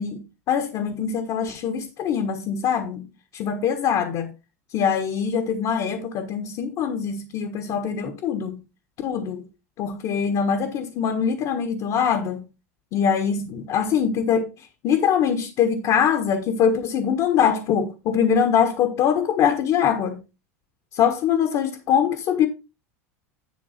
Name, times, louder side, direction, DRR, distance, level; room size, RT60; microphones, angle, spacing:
voice 1, 0.0-3.1 3.3-4.3 4.7-8.6 9.0-9.5 9.8-12.4 12.9-20.2 20.9-22.5, left 7 dB, 50° left, 1.5 m, -23 dB
11.0 x 3.6 x 5.9 m
hypercardioid pair, 95°, 8 cm